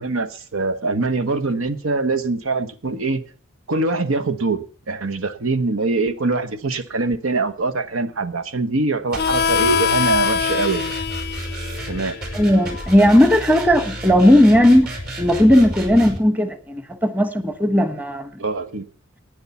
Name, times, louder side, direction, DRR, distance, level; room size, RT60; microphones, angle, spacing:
voice 1, 0.0-3.2 3.7-10.9 11.9-12.2 18.4-18.9, right 3 dB, 80° right, 1.1 m, -23 dB
sound 1, 9.1-16.2, right 1 dB, 50° right, 5.8 m, -32 dB
Harmonica, 9.2-14.4, left 8 dB, 50° left, 0.5 m, -25 dB
voice 2, 12.3-14.9 15.2-18.3, left 1 dB, 10° right, 1.1 m, -16 dB
11.0 x 9.7 x 7.0 m
head